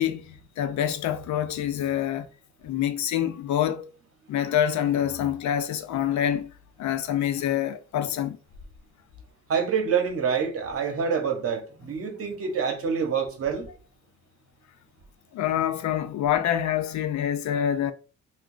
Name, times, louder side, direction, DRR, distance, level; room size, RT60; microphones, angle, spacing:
voice 1, 0.0-2.3 2.6-3.9 4.3-6.5 6.8-8.4 15.3-17.9, left 10 dB, 70° left, 0.5 m, -26 dB
voice 2, 9.5-13.7, right 6 dB, 50° right, 0.9 m, -26 dB
2.3 x 2.3 x 3.7 m
cardioid pair, 90°, 30 cm